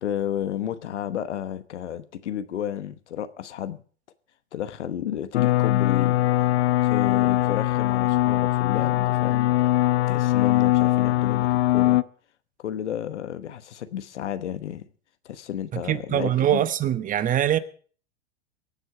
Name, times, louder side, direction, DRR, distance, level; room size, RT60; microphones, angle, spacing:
voice 1, 0.0-3.8 4.5-6.2 6.8-9.7 10.1-12.0 12.6-14.9 15.2-16.6, left 10 dB, 85° left, 1.2 m, -32 dB
sound 1, 5.3-12.0, left 16 dB, 65° left, 0.8 m, -21 dB
voice 2, 15.7-17.6, right 11 dB, 25° right, 1.0 m, -23 dB
23.5 x 7.9 x 4.9 m
hypercardioid pair, 120°, 34 cm